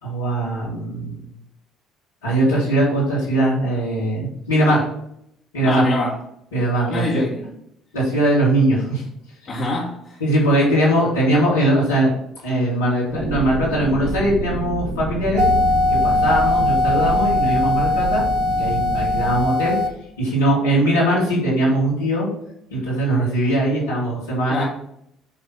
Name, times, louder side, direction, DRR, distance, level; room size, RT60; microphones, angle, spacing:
voice 1, 0.0-1.3 2.2-4.9 5.5-5.8 6.5-7.2 7.9-9.0 10.2-12.1 12.4-15.4 15.9-19.8 20.2-22.3 22.7-24.6, right 1 dB, 85° left, -6 dB, 2.6 m, -20 dB
voice 2, 5.6-6.2 6.9-7.6 9.5-10.2 24.5-24.6, left 2 dB, 40° left, -7 dB, 1.8 m, -25 dB
sound 1, 13.1-19.4, right 2 dB, 30° right, 2.5 m, -28 dB
sound 2, 15.4-19.9, left 2 dB, 65° right, 0.9 m, -20 dB
9.8 x 3.3 x 4.3 m, 0.75 s
hypercardioid pair, 55°, 0 cm